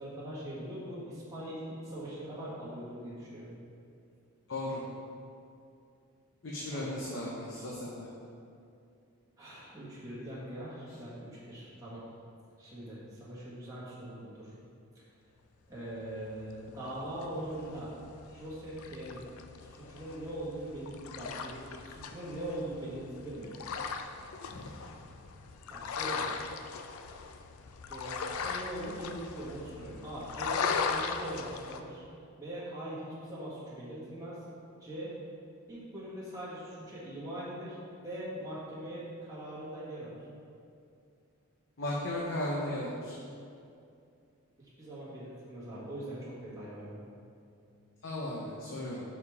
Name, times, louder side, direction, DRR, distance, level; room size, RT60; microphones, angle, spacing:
voice 1, 0.0-3.5 6.7-7.0 9.4-12.0 12.6-14.5 15.7-17.9 18.3-19.2 19.6-23.5 25.7-26.3 27.9-32.0 32.4-34.4 34.8-35.1 35.7-37.8 38.0-40.2 44.6-46.9, right 1 dB, 15° right, -9 dB, 1.4 m, -41 dB
voice 2, 4.5-4.8 6.4-8.1 24.5-24.7 41.8-43.1 48.0-49.0, left 1 dB, 60° left, -5 dB, 0.7 m, -36 dB
sound 1, 16.4-31.8, left 5 dB, 80° left, 0.4 m, -38 dB
5.2 x 4.8 x 4.8 m, 2.5 s
head